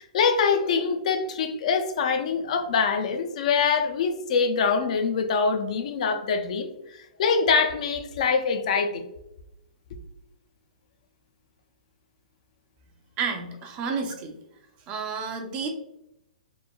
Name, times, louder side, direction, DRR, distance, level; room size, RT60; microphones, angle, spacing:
voice 1, 0.0-9.0, left 5 dB, 60° left, 7 dB, 0.3 m, -24 dB
voice 2, 13.2-14.4 14.9-15.7, right 5 dB, 25° right, 4 dB, 0.4 m, -30 dB
3.0 x 2.1 x 2.2 m, 0.85 s
hypercardioid pair, 140°, 4 cm